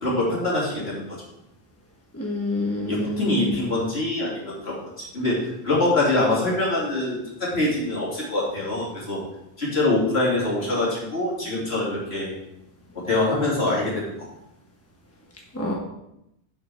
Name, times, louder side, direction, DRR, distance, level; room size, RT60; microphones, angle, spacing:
voice 1, 0.0-1.0 2.9-5.4 5.6-9.2 9.6-12.3 13.1-14.1, left 2 dB, 75° left, -5 dB, 3.1 m, -24 dB
voice 2, 2.1-3.6 15.5-15.7, left 2 dB, 15° left, -2 dB, 1.3 m, -27 dB
7.5 x 5.8 x 5.7 m, 0.84 s
omnidirectional pair, 1.1 m